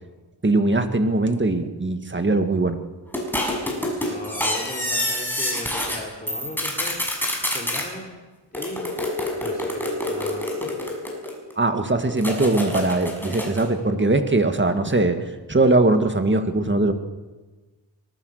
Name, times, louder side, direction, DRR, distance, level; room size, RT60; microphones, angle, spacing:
voice 1, 0.4-2.8 4.1-4.2 11.6-16.9, right 2 dB, 25° right, 7 dB, 2.1 m, -21 dB
sound 1, 3.1-6.0 6.3-7.9 8.5-11.5 12.2-13.7, left 1 dB, 5° left, 6.7 m, -27 dB
voice 2, 3.6-7.0 7.5-8.1 8.5-8.9 9.4-10.6, left 1 dB, 20° left, -2 dB, 4.0 m, -37 dB
25.0 x 19.5 x 6.7 m, 1.2 s
wide cardioid pair, 70°, 43 cm